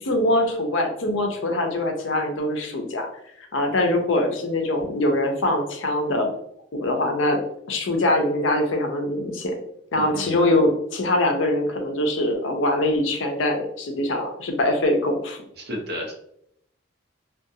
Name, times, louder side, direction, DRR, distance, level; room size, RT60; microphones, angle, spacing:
voice 1, 0.0-3.1 3.4-6.3 6.7-7.4 7.7-9.6 9.9-15.4, left 1 dB, 80° left, 3 dB, 0.5 m, -23 dB
voice 2, 9.9-10.4 15.6-16.1, equal, 55° right, 0 dB, 0.6 m, -32 dB
2.4 x 2.3 x 2.7 m, 0.72 s
head